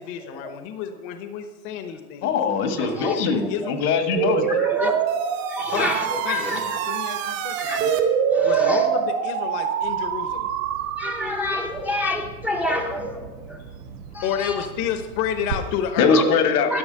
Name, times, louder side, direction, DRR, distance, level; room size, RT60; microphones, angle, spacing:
voice 1, 0.0-2.4 2.8-3.8 4.8-4.9 5.7-5.9 6.2-7.9 8.4-10.5 13.7-13.8 14.2-16.1, left 9 dB, 40° left, 9 dB, 0.9 m, -30 dB
voice 2, 2.2-4.5 16.0-16.8, left 5 dB, 75° left, 8 dB, 1.7 m, -21 dB
voice 3, 2.8-3.2 3.6-3.7 4.3-5.0 5.5-6.6 7.5-7.8 8.3-8.8 11.0-13.6 14.1-14.7 16.1-16.4 16.7-16.8, left 1 dB, 5° right, 1 dB, 0.6 m, -28 dB
sound 1, 4.2-11.6, right 7 dB, 55° right, 1.6 m, -24 dB
Bird vocalization bird call bird song, 9.8-15.5, right 7 dB, 85° right, 1.2 m, -40 dB
11.0 x 5.8 x 6.8 m, 1.3 s
hypercardioid pair, 125°, 46 cm